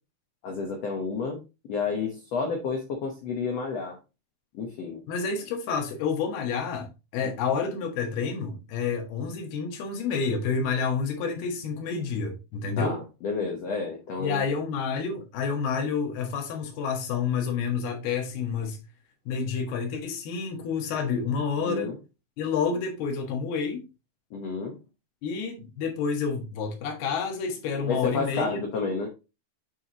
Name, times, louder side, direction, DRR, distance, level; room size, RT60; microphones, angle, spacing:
voice 1, 0.4-1.4 1.7-4.0 4.5-5.0 7.2-7.3 12.8-14.4 21.6-22.0 24.3-24.8 27.9-29.1, left 4 dB, 90° left, 1.4 m, -30 dB
voice 2, 5.1-13.0 14.2-18.8 19.3-21.9 22.4-23.8 25.2-28.6, left 5 dB, 75° left, 3.4 m, -29 dB
8.7 x 4.8 x 2.9 m
omnidirectional pair, 4.7 m